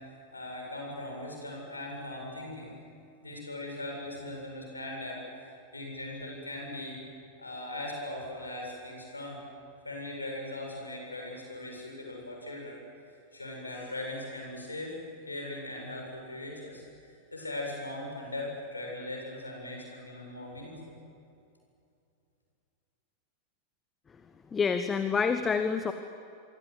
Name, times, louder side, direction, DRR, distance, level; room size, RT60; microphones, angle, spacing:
voice 1, 0.3-2.8 3.2-7.0 7.4-9.4 9.8-12.8 13.3-15.0 15.3-21.0, left 1 dB, 80° left, 0 dB, 7.4 m, -39 dB
voice 2, 24.5-25.9, left 5 dB, 20° left, 9 dB, 1.2 m, -27 dB
26.5 x 25.0 x 8.0 m, 2.6 s
figure-of-eight pair, 90°, 0 cm